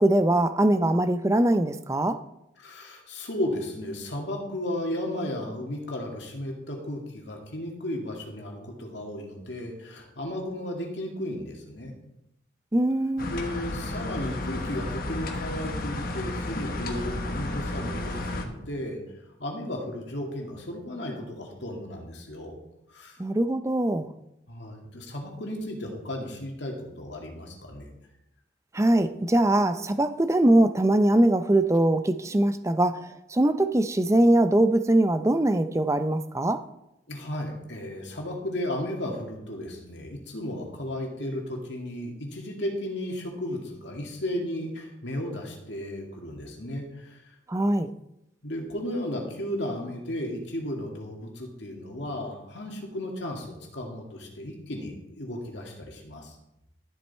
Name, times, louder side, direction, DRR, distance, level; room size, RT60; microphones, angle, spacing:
voice 1, 0.0-2.2 12.7-13.4 23.2-24.1 28.7-33.0 33.3-36.6 47.5-47.9, right 1 dB, 15° right, 11 dB, 0.4 m, -22 dB
voice 2, 2.6-11.9 13.3-19.0 19.4-22.6 22.9-23.2 24.5-27.9 37.1-47.2 48.4-56.4, left 1 dB, 70° left, 1 dB, 2.2 m, -34 dB
sound 1, 13.2-18.4, left 1 dB, 50° left, 1.2 m, -32 dB
12.5 x 7.5 x 4.3 m, 0.88 s
head